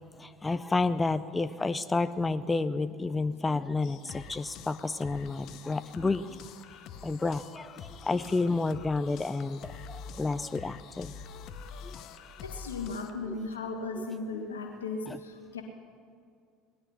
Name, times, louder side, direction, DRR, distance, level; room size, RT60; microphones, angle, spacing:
voice 1, 0.2-6.4 7.0-11.1 11.9-12.0 13.3-13.4 14.3-14.4 15.1-15.2, left 3 dB, 15° left, 12 dB, 0.5 m, -30 dB
sound 1, 3.8-13.1, left 6 dB, 55° left, 0.9 m, -46 dB
voice 2, 12.4-15.6, left 3 dB, 80° left, 3 dB, 1.9 m, -36 dB
19.5 x 11.0 x 5.6 m, 2.2 s
figure-of-eight pair, 65°, 0 cm